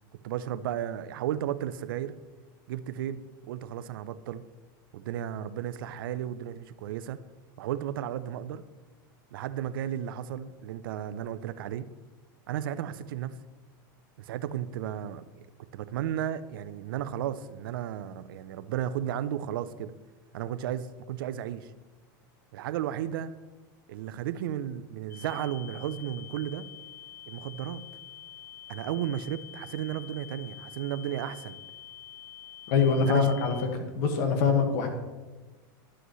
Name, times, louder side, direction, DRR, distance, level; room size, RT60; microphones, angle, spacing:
voice 1, 0.2-2.2 2.7-4.4 4.9-7.2 7.6-8.6 9.3-11.9 12.5-13.4 14.2-15.2 15.7-19.9 20.3-21.7 22.5-23.3 23.9-26.7 27.3-27.8 28.7-31.6 32.8-33.4, right 11 dB, 80° right, 13 dB, 0.5 m, -34 dB
sound 1, 25.1-33.7, left 12 dB, 25° left, 1.8 m, -47 dB
voice 2, 32.7-33.5 33.9-34.9, left 5 dB, 60° left, 4 dB, 1.7 m, -23 dB
11.5 x 7.8 x 3.1 m, 1.2 s
supercardioid pair, 125°, 11 cm